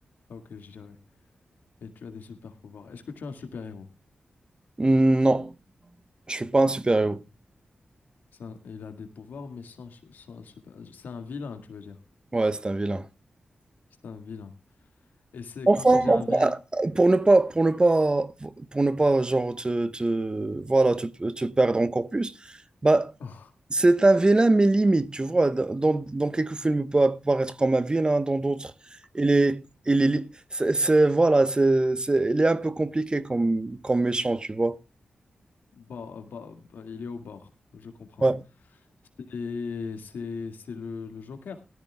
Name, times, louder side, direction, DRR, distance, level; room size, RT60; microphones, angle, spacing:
voice 1, 0.3-1.0 1.8-3.9 8.3-12.0 14.0-14.5 15.3-16.5 23.2-23.5 35.7-38.3 39.2-41.6, left 5 dB, 85° left, 2.0 m, -39 dB
voice 2, 4.8-5.5 6.3-7.2 12.3-13.1 15.7-22.3 22.8-23.1 23.7-28.7 29.1-34.8 38.2-38.4, right 2 dB, 30° right, 1.0 m, -22 dB
18.0 x 13.5 x 2.3 m
cardioid pair, 45°, 3 cm